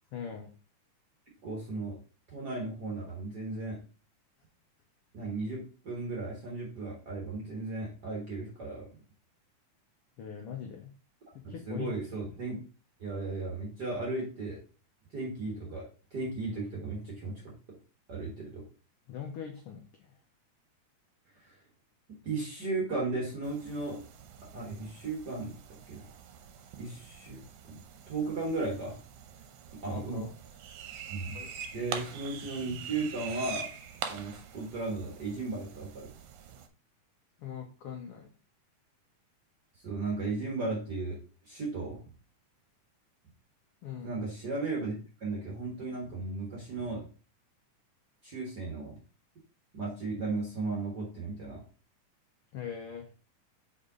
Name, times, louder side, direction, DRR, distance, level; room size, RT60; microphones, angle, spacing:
voice 1, 0.1-0.5 10.2-10.9 11.5-11.9 12.2-12.3 19.1-20.1 29.9-30.3 31.3-31.5 37.4-38.3 43.8-44.2 52.5-53.1, left 8 dB, 80° left, 2 dB, 1.3 m, -41 dB
voice 2, 1.4-2.0 2.3-3.8 5.1-8.9 11.4-12.6 13.0-14.6 15.1-17.8 18.1-18.6 21.4-21.6 22.2-24.0 24.5-25.5 25.9-26.1 26.8-29.0 29.8-30.3 31.1-31.4 31.7-33.7 34.1-36.1 39.8-42.0 44.0-47.1 48.2-48.9 49.7-51.6, right 3 dB, 45° right, -2 dB, 1.4 m, -35 dB
sound 1, 23.4-36.7, right 7 dB, 80° right, 2.0 m, -44 dB
5.5 x 4.6 x 3.8 m, 0.36 s
omnidirectional pair, 3.6 m